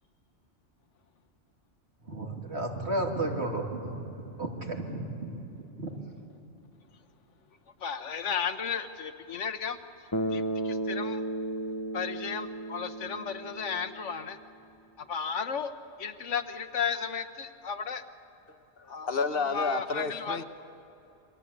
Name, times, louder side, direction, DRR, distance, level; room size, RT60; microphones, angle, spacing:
voice 1, 2.0-5.9, right 2 dB, 60° right, 1 dB, 3.1 m, -33 dB
voice 2, 7.8-11.2 11.9-14.4 15.0-18.0 18.9-20.4, left 6 dB, 80° left, 10 dB, 1.4 m, -34 dB
Bass guitar, 10.1-14.3, right 1 dB, 20° left, 0.9 m, -34 dB
voice 3, 18.5-20.4, left 4 dB, 55° left, 9 dB, 1.1 m, -31 dB
28.0 x 23.5 x 8.6 m, 2.9 s
omnidirectional pair, 1.2 m